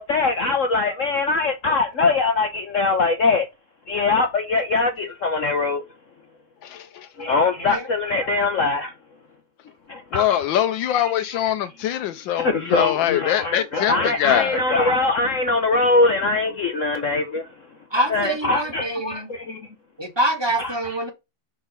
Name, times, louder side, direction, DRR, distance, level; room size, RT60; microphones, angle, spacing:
voice 1, 0.0-3.5 3.9-5.8 7.2-8.9 9.9-10.5 11.0-11.7 12.3-17.5 18.1-19.7 20.6-20.7, left 3 dB, 55° left, 0.9 m, -22 dB
voice 2, 10.1-13.9 14.2-14.6, left 11 dB, 75° left, 1.3 m, -22 dB
voice 3, 17.9-19.3 20.0-21.1, right 1 dB, 15° right, 1.3 m, -25 dB
5.8 x 4.1 x 5.3 m
omnidirectional pair, 2.1 m